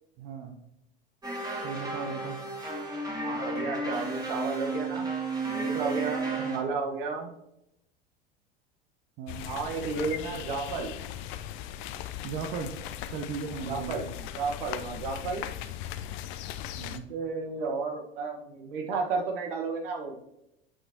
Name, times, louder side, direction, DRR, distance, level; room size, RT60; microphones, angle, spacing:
voice 1, 0.2-0.6 1.6-2.4 6.4-6.7 9.2-9.5 12.2-12.7 13.1-14.0 16.8-17.1, right 6 dB, 45° right, 4 dB, 0.8 m, -36 dB
sound 1, 1.2-6.6, right 3 dB, 15° right, 1.9 m, -33 dB
voice 2, 3.2-5.1 5.4-7.3 9.5-10.9 13.7-15.4 17.1-20.1, right 4 dB, 60° right, 3 dB, 1.3 m, -33 dB
sound 2, 9.3-17.0, left 11 dB, 40° left, 0.5 m, -38 dB
7.9 x 6.0 x 2.8 m, 0.84 s
figure-of-eight pair, 80°, 30 cm